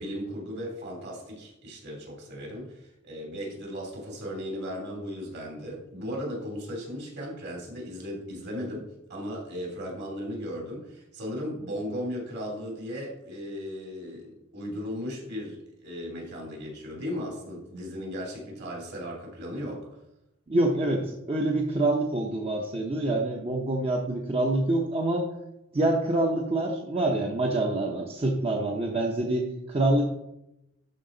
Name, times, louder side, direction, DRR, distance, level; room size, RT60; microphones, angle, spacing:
voice 1, 0.0-19.9, equal, 55° right, -1 dB, 2.9 m, -36 dB
voice 2, 20.5-25.2 25.7-30.0, right 2 dB, 30° right, 0 dB, 0.7 m, -26 dB
12.0 x 5.0 x 3.9 m, 0.88 s
head